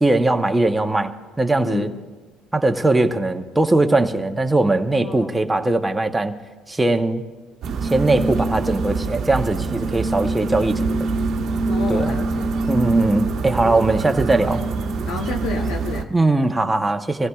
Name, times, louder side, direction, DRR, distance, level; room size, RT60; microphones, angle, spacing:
voice 1, 0.0-1.9 2.5-6.3 6.7-7.2 7.8-10.8 11.9-12.2 12.7-14.7 16.1-17.3, right 2 dB, 10° right, 5 dB, 0.9 m, -20 dB
voice 2, 1.6-2.0 4.9-5.3 11.7-12.6 12.9-13.1 13.6-13.8 15.1-16.1, left 5 dB, 75° left, 2 dB, 1.0 m, -31 dB
sound 1, 7.6-16.0, right 3 dB, 55° right, 1.0 m, -24 dB
24.5 x 15.5 x 2.4 m, 1.3 s
cardioid pair, 125°, 0 cm